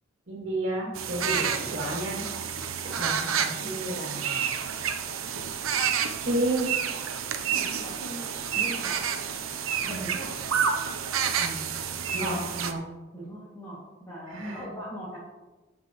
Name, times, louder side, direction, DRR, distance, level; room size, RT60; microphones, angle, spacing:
voice 1, 0.3-2.3 2.8-4.7 6.2-6.7 11.4-11.7 12.1-12.8 14.3-14.7, right 1 dB, 55° right, -3 dB, 2.6 m, -32 dB
sound 1, 1.0-12.7, right 7 dB, 85° right, 0.8 m, -29 dB
voice 2, 7.5-8.3 8.5-9.0 9.8-10.3 13.1-15.2, equal, 15° left, -9 dB, 2.4 m, -40 dB
14.5 x 7.4 x 3.1 m, 1.2 s
head